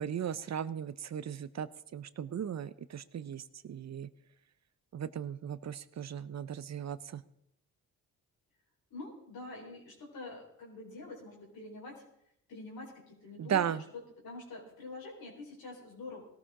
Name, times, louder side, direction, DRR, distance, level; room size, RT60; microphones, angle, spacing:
voice 1, 0.0-4.1 4.9-7.2 13.4-13.8, right 8 dB, 50° right, 15 dB, 0.7 m, -36 dB
voice 2, 8.9-12.0 12.5-13.6 14.2-16.2, left 2 dB, 75° left, -2 dB, 4.7 m, -46 dB
17.5 x 13.0 x 3.8 m, 0.77 s
supercardioid pair, 60°, 36 cm